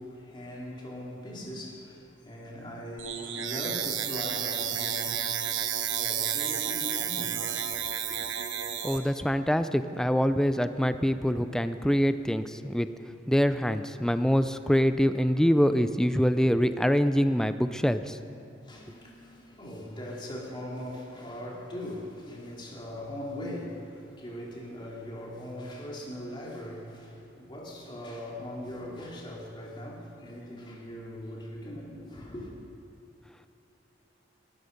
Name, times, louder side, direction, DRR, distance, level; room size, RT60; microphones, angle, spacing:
voice 1, 0.0-5.3 6.0-8.3 18.6-32.5, left 1 dB, 25° left, 3.0 m, -40 dB
sound 1, 3.0-9.0, right 9 dB, 90° right, 1.1 m, -31 dB
voice 2, 8.8-12.9 13.3-18.2, equal, 5° left, 0.5 m, -25 dB
19.5 x 12.5 x 5.3 m
head